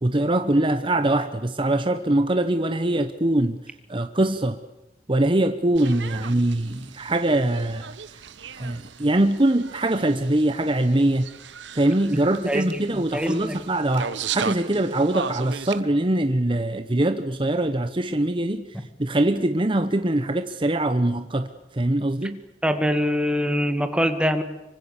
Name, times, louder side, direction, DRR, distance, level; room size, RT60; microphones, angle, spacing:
voice 1, 0.0-3.6 3.9-4.6 5.1-7.9 8.5-11.3 11.7-18.7 19.0-22.4, right 1 dB, 30° right, 1.0 m, -23 dB
sound 1, 5.8-15.8, right 6 dB, 90° right, 1.1 m, -37 dB
voice 2, 12.5-13.6 22.6-24.4, equal, 5° right, 2.0 m, -24 dB
26.5 x 24.5 x 7.2 m
head